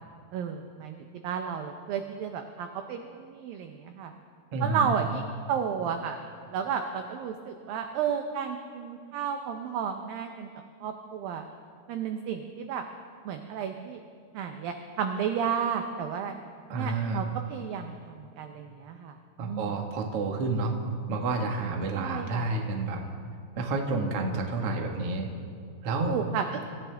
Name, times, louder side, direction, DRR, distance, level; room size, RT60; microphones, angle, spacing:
voice 1, 0.3-4.1 4.6-6.2 6.5-10.5 10.8-11.4 11.9-12.8 13.3-14.0 14.3-16.4 16.7-19.2 19.5-19.8 21.9-22.5 26.1-26.7, right 7 dB, 85° right, 5 dB, 2.0 m, -32 dB
voice 2, 4.5-5.0 16.7-17.2 19.4-20.7 21.1-23.0 23.6-25.3 25.8-26.1, right 3 dB, 65° right, 2 dB, 1.5 m, -29 dB
26.5 x 14.0 x 3.4 m, 2.2 s
omnidirectional pair, 5.0 m